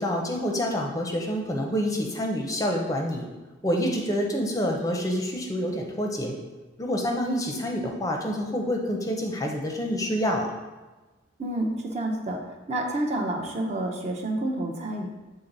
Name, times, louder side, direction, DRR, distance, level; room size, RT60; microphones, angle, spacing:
voice 1, 0.0-3.2 3.6-6.4 6.8-10.5, equal, 15° left, 1 dB, 0.6 m, -27 dB
voice 2, 11.4-12.4 12.7-15.1, right 1 dB, 35° right, 1 dB, 0.7 m, -29 dB
7.4 x 4.0 x 3.9 m, 1.2 s
head